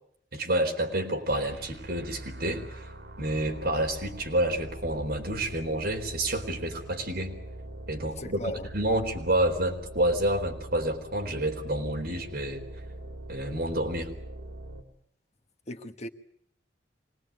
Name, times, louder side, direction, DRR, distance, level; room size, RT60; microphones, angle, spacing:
voice 1, 0.3-2.9 3.2-7.3 7.9-12.6 13.3-14.1, right 1 dB, 60° right, 2 dB, 4.3 m, -29 dB
sound 1, 1.3-14.8, right 1 dB, 80° right, 3.8 m, -43 dB
voice 2, 8.2-8.7 15.7-16.1, left 1 dB, 40° left, 7 dB, 1.4 m, -36 dB
25.0 x 19.5 x 9.6 m, 0.69 s
head